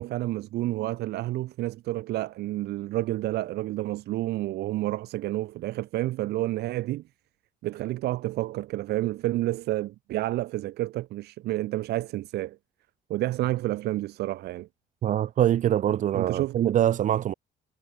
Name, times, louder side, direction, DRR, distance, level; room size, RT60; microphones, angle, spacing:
voice 1, 0.0-7.0 7.6-12.6 13.1-14.7 16.1-16.6, right 16 dB, 75° right, 1.2 m, -30 dB
voice 2, 15.0-17.3, right 11 dB, 50° right, 0.6 m, -24 dB
cardioid pair, 110°, 17 cm